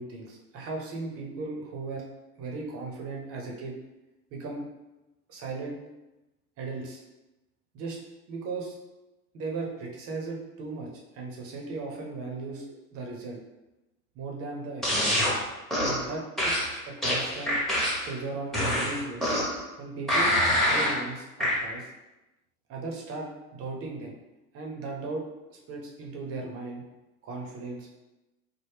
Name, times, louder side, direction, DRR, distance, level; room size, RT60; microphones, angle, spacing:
voice 1, 0.0-2.0 2.4-3.7 4.3-4.7 5.3-5.8 6.6-7.0 7.7-8.0 8.3-8.8 9.3-13.4 14.1-15.0 15.8-17.5 18.0-19.4 19.8-21.9 22.7-24.2 24.5-25.2 25.5-26.8 27.2-27.9, right 3 dB, 30° right, 0 dB, 0.7 m, -37 dB
sound 1, 14.8-15.3 15.7-16.0 16.4-18.1 18.5-19.6 20.1-21.0 21.4-21.6, equal, ahead, 0.8 m, -25 dB
3.3 x 2.0 x 3.4 m, 1.0 s
hypercardioid pair, 100°, 44 cm